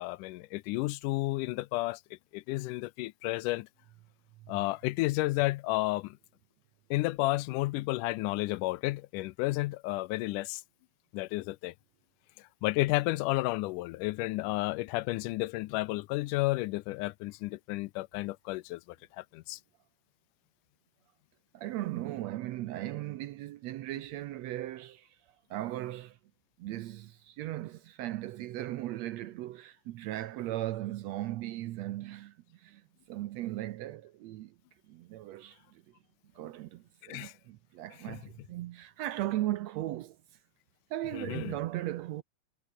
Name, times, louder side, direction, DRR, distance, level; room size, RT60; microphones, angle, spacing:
voice 1, 0.0-2.0 2.3-3.7 4.5-6.2 6.9-10.6 11.1-11.7 12.6-19.6 37.1-37.3 38.1-38.2 41.1-41.6, left 20 dB, 85° left, 2.2 m, -32 dB
voice 2, 21.5-25.1 25.5-26.2 26.6-32.8 33.1-34.5 34.9-35.8 36.4-40.2 40.9-42.2, right 15 dB, 75° right, 1.7 m, -37 dB
omnidirectional pair, 3.6 m